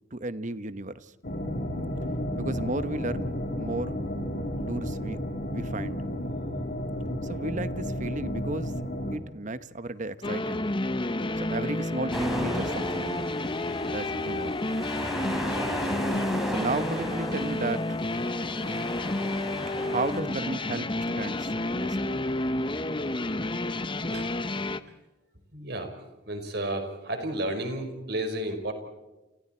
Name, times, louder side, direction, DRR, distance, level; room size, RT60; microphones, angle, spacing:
voice 1, 0.1-1.1 2.3-4.0 4.6-5.2 5.5-6.0 7.2-8.7 9.1-10.7 11.4-13.3 13.9-14.5 16.5-17.9 19.7-22.2, right 2 dB, 45° right, 13 dB, 1.0 m, -34 dB
sound 1, 1.2-9.2, equal, 60° left, 3.5 m, -32 dB
sound 2, 10.2-24.8, left 2 dB, 30° left, 0.9 m, -30 dB
sound 3, 12.1-20.2, equal, ahead, 4.6 m, -35 dB
voice 2, 25.5-25.9 26.3-28.7, right 1 dB, 65° right, 6 dB, 4.9 m, -32 dB
30.0 x 29.0 x 4.4 m, 1.1 s
head